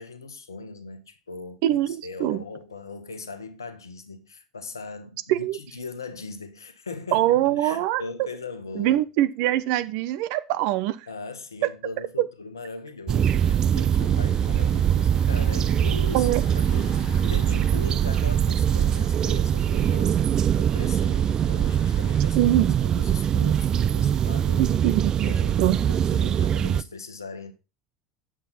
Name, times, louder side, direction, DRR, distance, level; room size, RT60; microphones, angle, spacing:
voice 1, 0.0-9.0 11.1-16.3 16.5-16.9 17.2-20.2 20.6-22.5 22.8-24.9 25.2-27.5, left 4 dB, 80° left, 1.2 m, -39 dB
voice 2, 1.6-2.4 5.3-5.6 7.1-8.0 8.7-11.1 12.2-12.3 16.1-16.5 22.4-22.7 24.6-25.8, right 14 dB, 55° right, 0.8 m, -23 dB
sound 1, 13.1-26.8, right 9 dB, 35° right, 0.4 m, -22 dB
sound 2, 13.9-22.2, left 11 dB, 50° left, 1.0 m, -44 dB
8.7 x 7.4 x 4.1 m
figure-of-eight pair, 75°, 2 cm